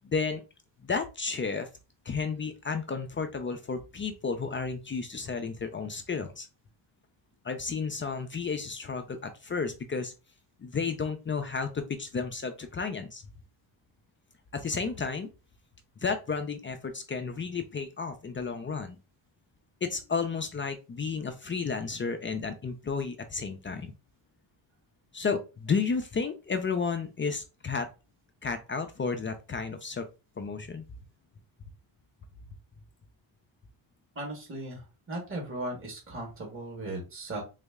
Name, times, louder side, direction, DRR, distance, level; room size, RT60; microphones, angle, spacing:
voice 1, 0.0-0.4 0.8-1.7 2.1-6.5 7.4-10.1 10.6-13.2 14.5-15.3 16.0-19.0 19.8-23.9 25.1-27.9 28.4-30.1 30.4-30.8, left 5 dB, 25° left, 7 dB, 0.4 m, -32 dB
voice 2, 34.1-37.4, right 1 dB, 25° right, -1 dB, 1.4 m, -37 dB
3.9 x 2.1 x 3.5 m, 0.30 s
cardioid pair, 120°, 50 cm